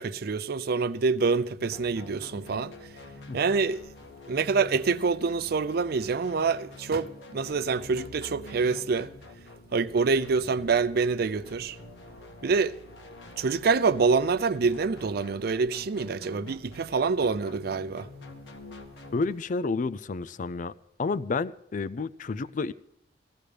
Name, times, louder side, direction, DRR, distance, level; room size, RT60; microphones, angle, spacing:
voice 1, 0.0-2.7 3.3-3.8 4.3-9.1 9.7-11.8 12.4-12.8 13.4-18.1, right 4 dB, 55° right, 0.5 m, -26 dB
sound 1, 1.6-19.3, left 2 dB, 85° left, 1.6 m, -47 dB
voice 2, 19.1-20.7 21.0-22.7, left 4 dB, 45° left, 0.4 m, -30 dB
18.5 x 14.5 x 3.3 m
head